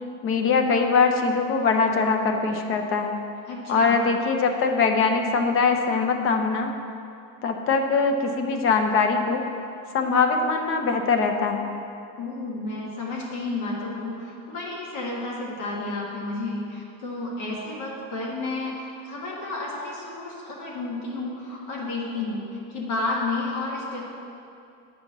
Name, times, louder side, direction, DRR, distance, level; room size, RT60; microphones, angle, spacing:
voice 1, 0.2-3.2 3.7-6.7 7.4-9.4 9.9-11.7, left 4 dB, 40° left, 5 dB, 0.8 m, -22 dB
voice 2, 3.5-4.0 12.2-24.0, left 2 dB, 70° left, -4 dB, 1.9 m, -31 dB
9.0 x 4.5 x 6.7 m, 2.6 s
cardioid pair, 155°, 33 cm